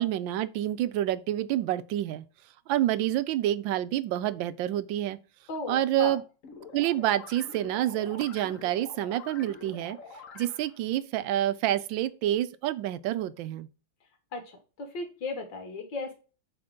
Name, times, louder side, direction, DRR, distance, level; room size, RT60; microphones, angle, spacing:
voice 1, 0.0-2.2 2.7-5.2 5.7-6.2 6.7-10.0 10.3-13.7, right 13 dB, 80° right, 1.3 m, -28 dB
voice 2, 5.5-6.2 14.3-16.1, left 3 dB, 70° left, 2.1 m, -36 dB
sound 1, 6.4-10.8, left 4 dB, 50° left, 1.2 m, -46 dB
7.9 x 3.4 x 3.7 m
omnidirectional pair, 2.1 m